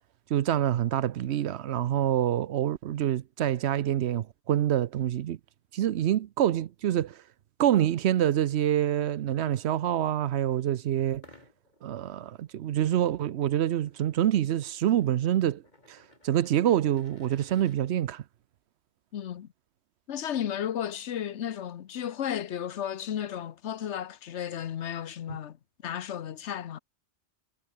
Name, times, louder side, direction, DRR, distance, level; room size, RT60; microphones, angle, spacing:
voice 1, 0.3-5.4 5.7-7.2 7.6-11.2 11.8-15.6 15.9-16.0 16.2-18.2, right 11 dB, 75° right, 0.9 m, -26 dB
sound 1, 11.1-17.8, left 2 dB, 40° left, 3.9 m, -59 dB
voice 2, 19.1-19.5 20.1-25.6 25.8-26.8, left 9 dB, 90° left, 1.1 m, -33 dB
omnidirectional pair, 1.2 m